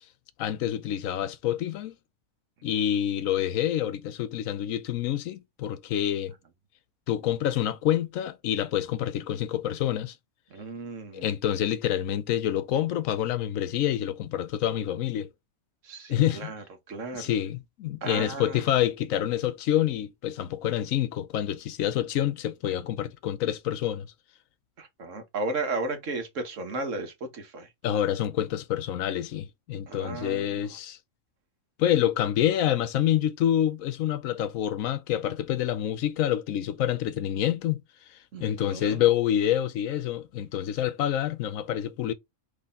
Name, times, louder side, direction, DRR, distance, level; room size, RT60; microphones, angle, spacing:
voice 1, 0.4-2.0 2.6-6.3 7.1-10.2 11.1-15.3 16.1-16.5 17.1-24.1 27.8-31.0 31.8-37.8 38.4-42.1, left 11 dB, 80° left, 1.0 m, -27 dB
voice 2, 10.5-11.3 15.8-17.3 18.0-18.6 24.8-27.7 29.9-30.7 38.3-39.0, right 3 dB, 65° right, 1.4 m, -35 dB
4.1 x 3.3 x 3.6 m
omnidirectional pair, 1.4 m